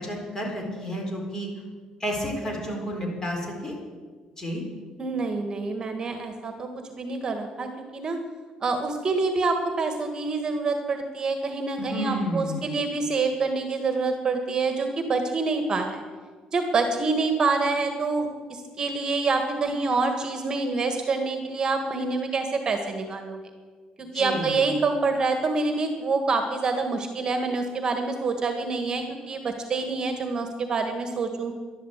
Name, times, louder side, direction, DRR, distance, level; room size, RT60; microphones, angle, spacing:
voice 1, 0.0-1.5 2.0-3.7 4.4-4.6 11.8-12.8 24.1-24.6, equal, 25° left, 0 dB, 4.3 m, -31 dB
voice 2, 5.0-8.2 8.6-16.0 16.5-23.4 24.0-31.5, right 3 dB, 35° right, 6 dB, 1.6 m, -26 dB
11.5 x 11.5 x 8.1 m, 1.5 s
cardioid pair, 125°, 2 cm